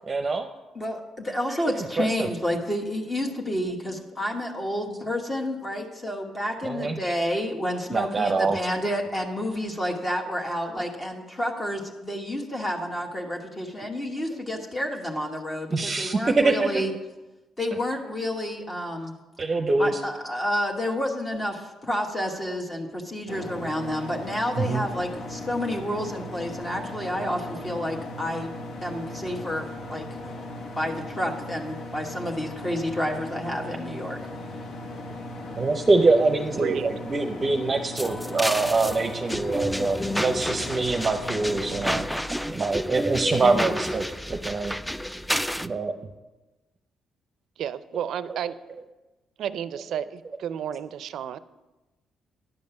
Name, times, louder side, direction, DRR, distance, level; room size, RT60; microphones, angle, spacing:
voice 1, 0.1-0.5 1.7-2.3 6.6-7.0 7.9-8.6 14.3-14.5 15.7-16.7 19.4-20.0 22.8-22.9 23.6-23.7 24.6-24.8 35.6-42.0 42.5-44.8 45.6-45.9, right 3 dB, 35° right, 5 dB, 0.7 m, -24 dB
voice 2, 0.7-16.9 17.6-19.1 19.8-28.5 28.8-30.0 30.8-34.2, left 1 dB, 25° left, 1 dB, 1.3 m, -30 dB
sound 1, 23.3-42.0, left 1 dB, 70° left, 1.0 m, -38 dB
voice 3, 36.6-36.9 47.6-48.6 49.4-51.4, right 9 dB, 75° right, 15 dB, 0.4 m, -32 dB
sound 2, 38.0-45.7, equal, 5° left, 0.3 m, -30 dB
11.0 x 5.3 x 6.8 m, 1.1 s
cardioid pair, 90°, 0 cm